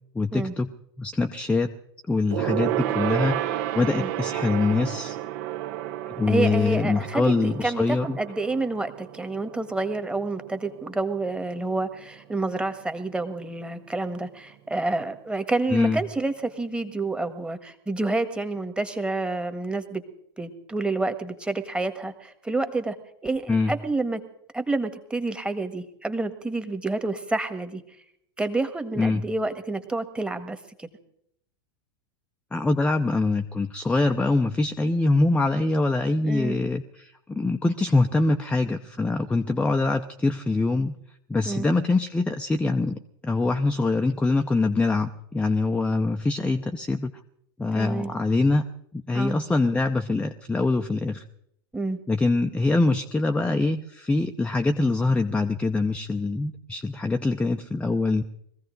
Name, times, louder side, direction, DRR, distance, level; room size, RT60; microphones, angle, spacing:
voice 1, 0.1-0.7 1.0-1.7 2.1-5.2 6.2-8.2 15.7-16.0 23.5-23.7 29.0-29.2 32.5-40.9 41.3-47.1 47.6-48.6 48.9-51.2 52.1-58.2, left 3 dB, 10° left, 5 dB, 0.8 m, -24 dB
Gong, 2.3-12.1 12.4-12.6 12.9-13.0, right 13 dB, 55° right, 1.1 m, -32 dB
voice 2, 6.3-20.0 20.4-22.9 23.2-24.2 24.5-27.8 28.4-30.9 36.2-36.6 41.4-41.7 47.8-48.1 49.1-49.4 51.7-52.0, right 2 dB, 10° right, 9 dB, 1.6 m, -28 dB
21.5 x 15.5 x 3.9 m, 0.75 s
hypercardioid pair, 90°, 13 cm